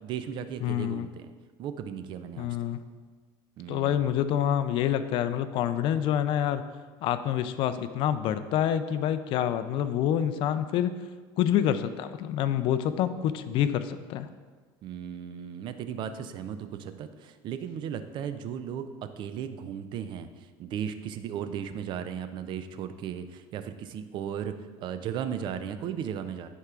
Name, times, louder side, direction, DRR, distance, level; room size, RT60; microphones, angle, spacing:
voice 1, 0.0-1.3 1.6-2.7 3.6-4.1 14.8-26.5, right 8 dB, 45° right, 10 dB, 0.4 m, -36 dB
voice 2, 0.6-1.1 2.4-2.8 3.7-6.6 7.0-11.0 11.4-14.3, left 10 dB, 50° left, 11 dB, 0.4 m, -27 dB
9.7 x 4.6 x 2.4 m, 1.5 s
supercardioid pair, 120°, 11 cm